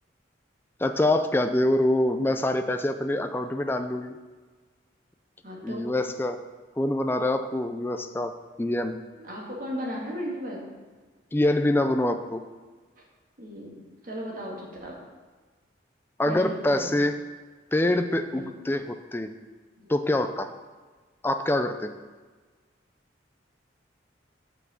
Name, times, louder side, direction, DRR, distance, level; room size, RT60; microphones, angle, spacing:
voice 1, 0.8-4.2 5.6-6.4 6.8-8.3 8.6-9.0 11.3-12.4 16.2-17.1 17.7-19.3 19.9-20.5 21.2-21.9, left 1 dB, 10° left, 8 dB, 0.3 m, -25 dB
voice 2, 5.4-5.9 9.2-10.7 13.0-13.1 13.4-15.0 16.2-16.9 18.3-18.5 19.8-19.9, equal, 45° right, -3 dB, 2.0 m, -36 dB
6.0 x 5.9 x 6.9 m, 1.4 s
head